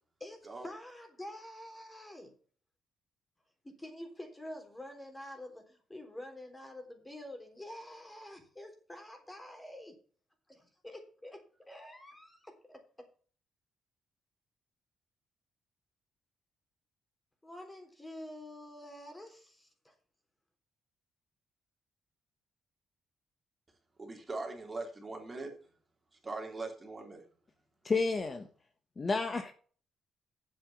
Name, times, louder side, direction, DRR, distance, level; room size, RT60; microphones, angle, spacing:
voice 1, 0.2-2.3 3.6-10.0 10.5-11.4 11.7-12.8 17.4-19.9, left 1 dB, 15° left, 3.6 m, -47 dB
voice 2, 24.0-25.5 26.2-27.2, right 3 dB, 25° right, 3.3 m, -41 dB
voice 3, 27.8-28.4 29.0-29.5, left 4 dB, 30° left, 1.2 m, -30 dB
8.0 x 7.5 x 7.1 m
cardioid pair, 90°, 0 cm